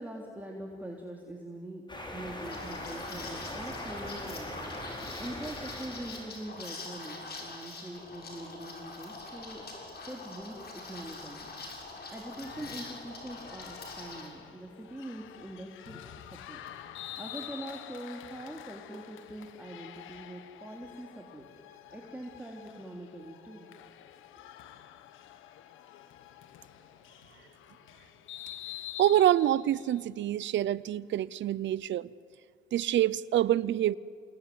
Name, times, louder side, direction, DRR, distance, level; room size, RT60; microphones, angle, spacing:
voice 1, 0.0-1.8 2.1-11.5 12.1-16.6 17.2-21.5 21.9-23.7 24.4-24.5, right 1 dB, 10° right, 3.4 m, -43 dB
sound 1, 1.9-6.5, left 1 dB, 25° left, 6.3 m, -41 dB
Liquid, 2.4-14.3, left 3 dB, 55° left, 7.2 m, -44 dB
sound 2, 12.4-30.1, left 11 dB, 90° left, 1.5 m, -48 dB
voice 2, 29.0-32.1 32.7-34.0, right 12 dB, 70° right, 0.7 m, -26 dB
28.5 x 19.0 x 9.5 m
cardioid pair, 90°, 20 cm